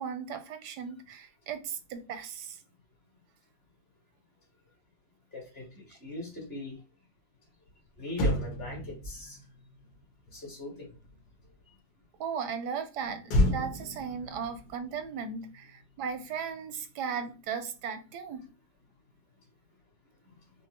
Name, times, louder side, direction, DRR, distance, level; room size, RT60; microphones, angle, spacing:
voice 1, 0.0-2.6 12.2-18.4, right 6 dB, 85° right, 1.2 m, -37 dB
voice 2, 5.3-6.7 8.0-9.4 10.3-10.9, left 2 dB, 40° left, 1.7 m, -40 dB
Motor vehicle (road), 7.7-7.8 8.1-11.6 13.3-15.9 16.1-16.4, left 1 dB, 70° left, 1.4 m, -32 dB
5.1 x 2.0 x 2.9 m
omnidirectional pair, 1.7 m